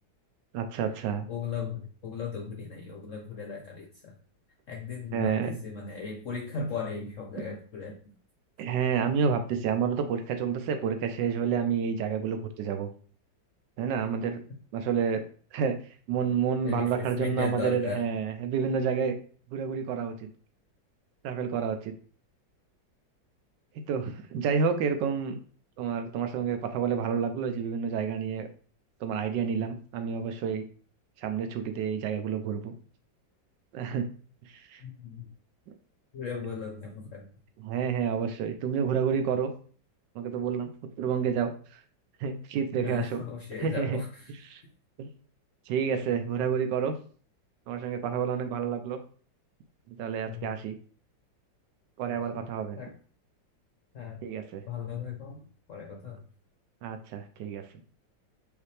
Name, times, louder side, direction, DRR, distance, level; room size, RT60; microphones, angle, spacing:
voice 1, 0.5-1.3 5.1-5.6 8.6-12.9 13.8-14.4 14.7-15.2 15.5-15.7 16.1-19.2 19.5-20.3 21.2-21.9 23.9-25.4 25.8-28.5 29.0-30.6 31.2-32.7 33.7-34.1 34.4-34.8 37.6-39.5 40.2-40.7 41.0-41.8 42.2-43.2 43.6-44.0 44.5-44.6 45.0-45.1 45.7-47.0 47.7-49.0 50.0-50.8 52.0-52.8 54.2-54.6 56.8-57.6, right 7 dB, 75° right, 7 dB, 1.2 m, -29 dB
voice 2, 1.3-4.1 4.7-8.0 16.6-18.0 29.5-29.7 34.8-35.3 36.1-37.3 42.8-44.3 50.2-50.5 52.1-52.5 52.8-52.9 53.9-54.2 54.7-55.4 55.7-56.2, left 6 dB, 60° left, 0 dB, 0.8 m, -37 dB
5.0 x 2.8 x 3.2 m, 0.43 s
omnidirectional pair, 2.0 m